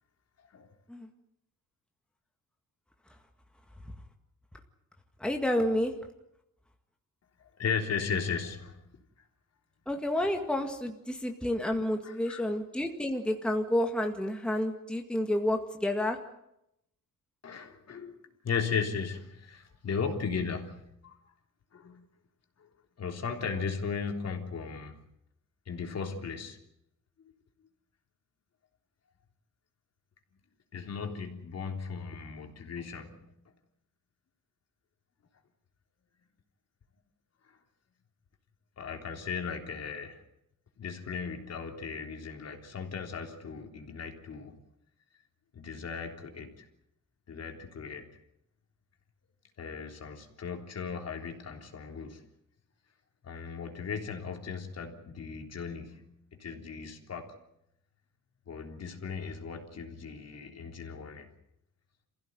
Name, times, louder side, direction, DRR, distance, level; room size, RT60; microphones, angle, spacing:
voice 1, 5.2-5.9 9.9-16.2, left 1 dB, 5° left, 3 dB, 2.0 m, -30 dB
voice 2, 7.4-8.9 10.2-10.4 12.0-12.5 17.4-21.2 21.7-22.1 22.6-22.7 23.0-25.0 25.7-26.6 30.7-33.4 37.4-37.6 38.8-40.2 40.8-44.6 45.5-46.7 47.3-48.1 49.6-52.2 53.2-57.4 58.5-61.3, left 6 dB, 50° left, 4 dB, 3.6 m, -37 dB
27.5 x 16.0 x 9.4 m, 0.81 s
cardioid pair, 140°, 32 cm